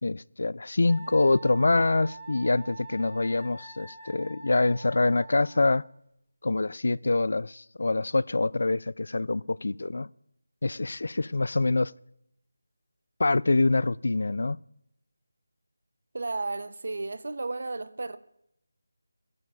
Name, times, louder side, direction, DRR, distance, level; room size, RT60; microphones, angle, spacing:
voice 1, 0.0-5.8 6.4-10.1 10.6-11.9 13.2-14.6, left 2 dB, 65° left, 0.3 m, -25 dB
Wind instrument woodwind instrument, 0.9-5.9, right 3 dB, 20° right, 1.7 m, -45 dB
voice 2, 16.1-18.2, right 3 dB, 60° right, 0.7 m, -33 dB
21.5 x 10.5 x 2.5 m
figure-of-eight pair, 165°, 0 cm